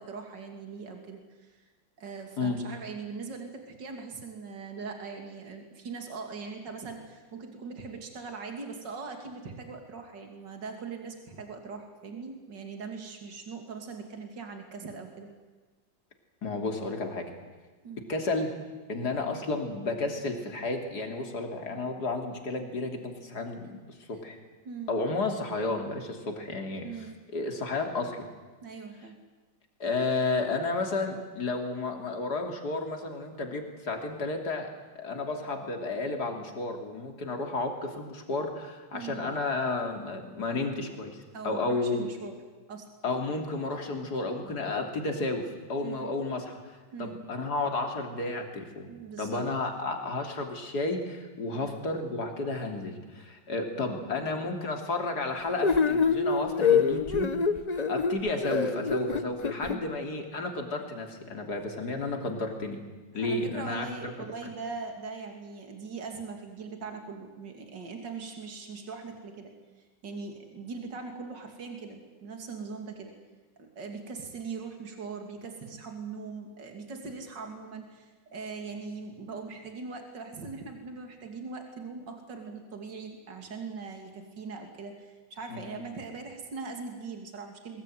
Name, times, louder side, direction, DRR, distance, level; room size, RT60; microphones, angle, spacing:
voice 1, 0.0-1.6 2.0-15.3 17.8-18.0 23.6-23.7 24.1-24.2 24.6-24.9 26.8-27.2 28.6-29.2 38.9-39.2 41.3-42.3 42.7-42.9 45.8-46.1 46.9-47.2 48.9-49.4 51.5-51.7 59.6-60.0 63.1-69.5 70.0-73.1 73.6-87.8, right 4 dB, 70° right, 4 dB, 3.3 m, -41 dB
voice 2, 16.4-17.2 18.1-18.5 18.9-24.4 24.9-26.9 27.3-28.3 29.8-34.7 35.0-41.2 41.4-42.1 43.0-48.9 49.2-57.3 57.9-62.8 63.1-64.3 85.5-85.6, left 3 dB, 55° left, 4 dB, 3.5 m, -32 dB
sound 1, 55.6-59.8, left 5 dB, 35° left, 0.7 m, -25 dB
23.0 x 20.5 x 9.3 m, 1.3 s
omnidirectional pair, 2.0 m